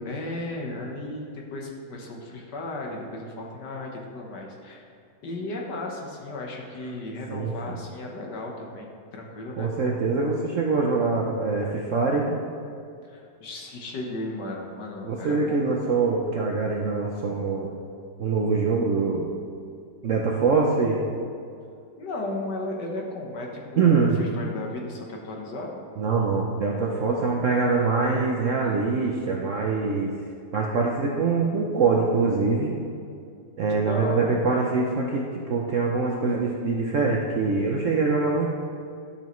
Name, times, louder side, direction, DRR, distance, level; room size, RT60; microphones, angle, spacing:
voice 1, 0.1-4.9 5.2-9.7 13.1-15.7 22.0-25.8 33.7-34.4, left 2 dB, 65° left, 0 dB, 1.7 m, -35 dB
voice 2, 7.3-7.8 9.6-12.4 15.1-17.7 18.2-19.3 20.0-21.0 23.8-24.2 26.0-30.1 30.5-32.7 33.6-38.5, right 4 dB, 60° right, -1 dB, 0.8 m, -24 dB
11.0 x 6.9 x 3.1 m, 2.4 s
omnidirectional pair, 2.0 m